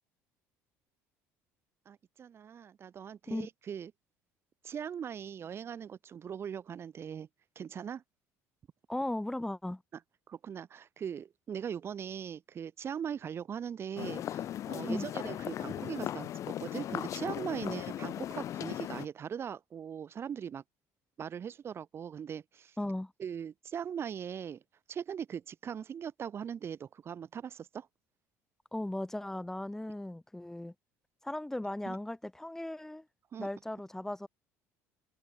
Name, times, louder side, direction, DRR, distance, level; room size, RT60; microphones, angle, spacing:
voice 1, 1.9-3.9 4.6-7.3 7.5-8.0 10.3-20.6 21.2-22.8 23.2-24.6 24.9-27.9 31.9-32.0 33.3-33.5, right 8 dB, 40° right, 4.5 m, -40 dB
voice 2, 8.9-9.8 14.9-15.1 17.6-17.7 22.8-23.1 28.7-30.7 31.2-33.1 33.4-34.3, left 1 dB, 5° left, 2.8 m, -37 dB
sound 1, 14.0-19.1, left 11 dB, 55° left, 3.7 m, -37 dB
supercardioid pair, 100°, 6 cm